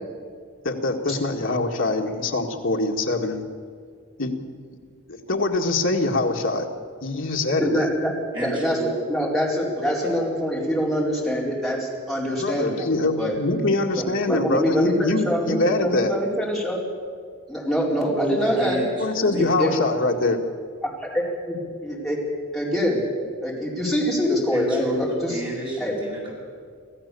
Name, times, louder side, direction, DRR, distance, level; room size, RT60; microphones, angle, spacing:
voice 1, 0.6-3.4 4.2-4.3 5.1-6.7 7.0-7.9 12.4-16.1 19.0-20.4, left 2 dB, 60° left, 1 dB, 2.0 m, -24 dB
voice 2, 7.6-8.8 9.1-12.9 13.2-13.4 14.0-16.8 17.5-18.9 19.3-19.7 21.0-22.2 22.5-23.1 23.4-25.4 25.8-26.0, equal, ahead, -5 dB, 4.4 m, -24 dB
voice 3, 8.3-8.9 18.1-19.7 24.5-26.3, right 1 dB, 20° right, -3 dB, 6.9 m, -30 dB
25.5 x 15.5 x 7.0 m, 2.1 s
head